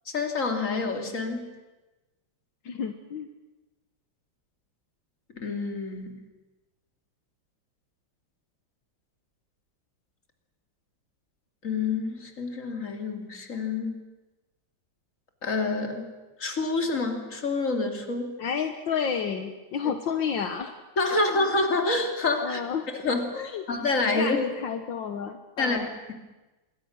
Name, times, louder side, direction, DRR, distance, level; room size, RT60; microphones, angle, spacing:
voice 1, 0.1-1.5 5.4-6.1 11.6-14.0 15.4-16.1 16.4-18.3 21.0-22.6 23.0-24.4 25.6-26.1, left 3 dB, 40° left, 4 dB, 3.0 m, -27 dB
voice 2, 2.7-3.3 18.4-20.7 21.1-21.4 22.4-22.9 23.3-23.6 24.0-25.9, left 7 dB, 75° left, 6 dB, 1.9 m, -31 dB
26.0 x 22.5 x 6.4 m, 1.1 s
omnidirectional pair, 2.1 m